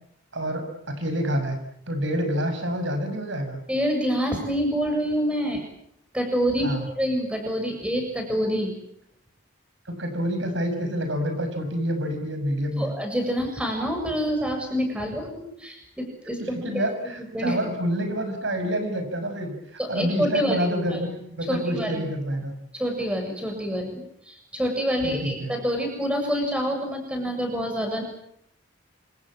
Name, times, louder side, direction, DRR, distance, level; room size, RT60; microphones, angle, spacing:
voice 1, 0.3-1.6 1.9-3.6 6.6-6.9 9.8-12.9 16.4-19.5 19.9-22.5 25.0-25.5, equal, 65° right, 7 dB, 6.6 m, -27 dB
voice 2, 3.7-5.6 6.1-8.7 12.8-16.8 17.2-17.6 19.8-20.7 21.5-22.0 22.7-28.0, equal, 5° right, 3 dB, 7.2 m, -27 dB
27.5 x 27.0 x 7.6 m, 0.74 s
head